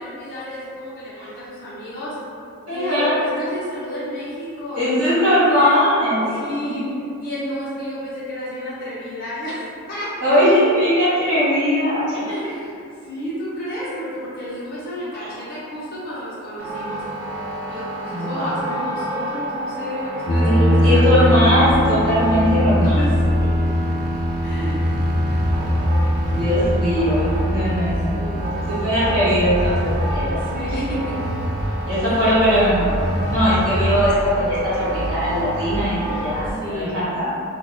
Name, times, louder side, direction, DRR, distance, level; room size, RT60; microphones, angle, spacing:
voice 1, 0.0-2.2 2.7-5.8 6.3-6.9 7.2-10.4 12.2-17.0 17.6-21.7 23.0-23.5 24.4-24.9 27.8-28.6 30.3-31.2 32.1-32.2 33.6-33.9 36.4-37.1, equal, 40° left, -10 dB, 1.0 m, -31 dB
voice 2, 2.7-3.1 4.7-6.7 10.2-12.4 15.1-15.3 18.1-18.5 20.4-23.0 26.3-30.4 31.8-37.3, equal, 55° right, -15 dB, 1.3 m, -20 dB
sound 1, 16.6-36.5, equal, 80° right, 0.6 m, -27 dB
sound 2, 20.3-33.4, equal, 70° left, 0.6 m, -23 dB
2.6 x 2.4 x 3.8 m, 2.5 s
head